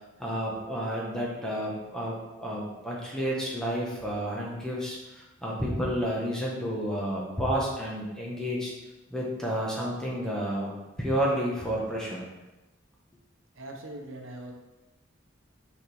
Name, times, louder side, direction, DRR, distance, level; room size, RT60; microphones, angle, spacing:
voice 1, 0.2-8.7 9.1-10.7 11.0-12.3, equal, 5° left, -5 dB, 1.3 m, -31 dB
voice 2, 13.5-14.5, right 1 dB, 75° right, 2 dB, 1.0 m, -41 dB
7.3 x 4.4 x 3.6 m, 1.0 s
head